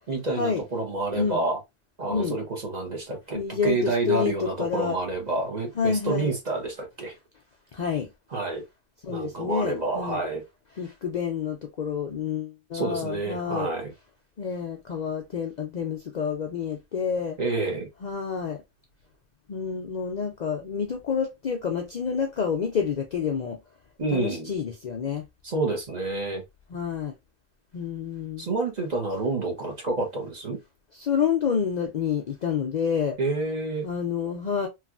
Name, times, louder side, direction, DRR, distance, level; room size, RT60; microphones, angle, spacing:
voice 1, 0.1-1.6 2.0-7.2 8.3-8.6 9.1-10.4 12.7-13.9 17.4-17.9 24.0-24.5 25.4-26.4 28.4-30.6 33.2-33.9, right 2 dB, 40° right, 0.9 m, -28 dB
voice 2, 3.3-5.0 5.8-6.3 7.7-8.1 9.0-10.2 10.8-13.7 14.4-17.4 18.0-18.6 19.5-23.6 24.1-25.3 26.7-27.1 27.7-28.5 30.9-33.2 33.8-34.7, left 6 dB, 55° left, 0.5 m, -28 dB
3.1 x 2.3 x 2.4 m
omnidirectional pair, 1.2 m